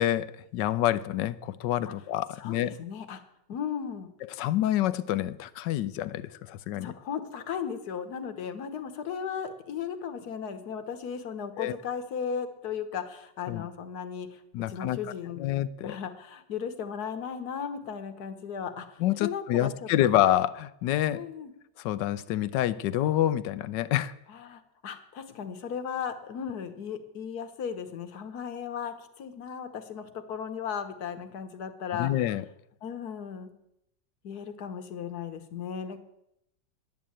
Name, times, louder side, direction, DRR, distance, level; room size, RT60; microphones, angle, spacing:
voice 1, 0.0-2.7 4.2-6.9 11.6-11.8 13.5-13.7 14.5-15.0 15.4-16.0 19.0-21.2 21.8-24.1 32.0-32.4, left 12 dB, 75° left, 1.3 m, -27 dB
voice 2, 2.4-3.2 3.5-4.1 6.8-14.4 14.7-15.5 15.8-19.9 21.1-21.5 24.3-32.1 32.8-33.5 34.2-36.0, left 7 dB, 60° left, 1.7 m, -36 dB
11.0 x 9.5 x 8.8 m
omnidirectional pair, 2.0 m